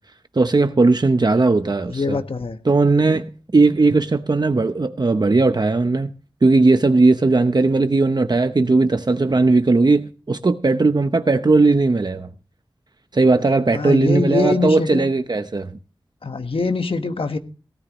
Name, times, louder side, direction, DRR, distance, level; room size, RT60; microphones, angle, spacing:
voice 1, 0.3-2.2 2.6-3.3 3.5-6.1 6.4-12.3 13.1-15.7, right 3 dB, 50° right, 0.8 m, -17 dB
voice 2, 1.9-2.6 13.7-15.0 16.2-17.4, left 3 dB, 85° left, 1.4 m, -23 dB
18.0 x 13.0 x 3.0 m
wide cardioid pair, 55°, 9 cm